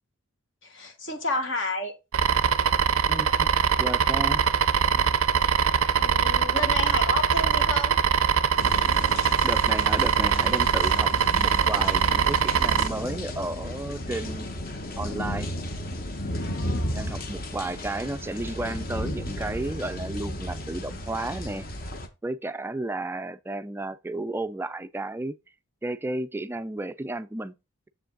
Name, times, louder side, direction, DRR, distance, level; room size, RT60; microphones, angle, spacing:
voice 1, 0.6-1.9 4.9-5.1 5.4-5.7 5.9-8.0 16.4-17.0, left 2 dB, 60° left, 1.3 m, -31 dB
sound 1, 2.1-12.9, right 7 dB, 85° right, 0.5 m, -22 dB
voice 2, 3.1-3.5 3.8-4.4 9.4-14.5 15.0-15.5 16.9-21.7 22.2-25.4 25.8-27.5, right 2 dB, 10° right, 0.3 m, -33 dB
sound 2, 8.6-22.1, left 1 dB, 45° left, 1.1 m, -34 dB
7.1 x 5.1 x 3.8 m
head